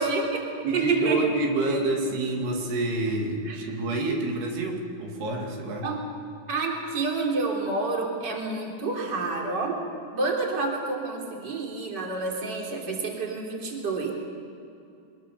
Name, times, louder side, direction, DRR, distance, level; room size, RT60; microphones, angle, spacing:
voice 1, 0.0-0.4 0.7-1.2 1.5-2.0 3.5-3.6 5.8-6.0 6.5-9.8 10.1-14.1, right 3 dB, 25° right, 0 dB, 3.6 m, -28 dB
voice 2, 0.6-5.9, right 2 dB, 80° right, 1 dB, 4.5 m, -28 dB
23.5 x 21.5 x 6.7 m, 2.6 s
omnidirectional pair, 4.6 m